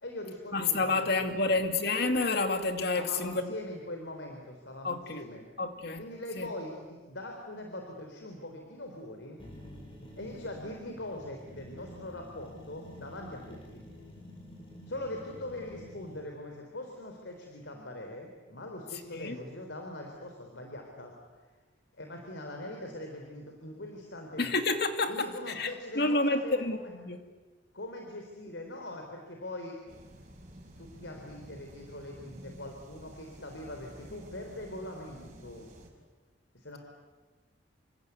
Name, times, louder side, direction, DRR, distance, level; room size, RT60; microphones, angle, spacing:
voice 1, 0.0-1.6 2.9-5.5 6.0-9.4 10.2-13.8 14.9-21.5 22.0-24.5 25.1-26.9 27.7-29.8 30.8-35.7 36.5-36.8, left 1 dB, 90° left, 2 dB, 3.9 m, -42 dB
voice 2, 0.5-3.5 4.8-5.2 5.6-6.1 6.4-6.5 19.1-19.4 24.4-27.2, left 3 dB, 60° left, 6 dB, 2.6 m, -29 dB
sound 1, 9.4-16.2, equal, 30° left, 7.0 m, -49 dB
sound 2, 29.9-35.9, right 1 dB, 40° right, 6.4 m, -51 dB
28.5 x 25.5 x 8.3 m, 1.3 s
head